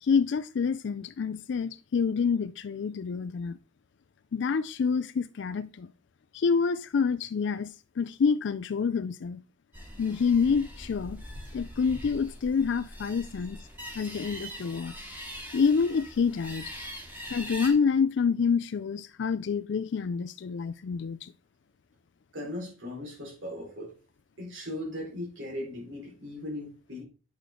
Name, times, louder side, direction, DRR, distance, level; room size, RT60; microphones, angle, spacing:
voice 1, 0.0-3.6 4.3-5.9 6.3-9.4 10.0-11.2 11.5-13.6 14.0-14.9 15.5-16.6 17.3-21.3, left 5 dB, 65° left, 0.4 m, -27 dB
sound 1, 9.7-17.7, equal, 10° right, 2.6 m, -42 dB
voice 2, 22.3-23.9 24.4-27.0, left 1 dB, 75° right, 4.4 m, -38 dB
9.4 x 6.7 x 3.8 m
head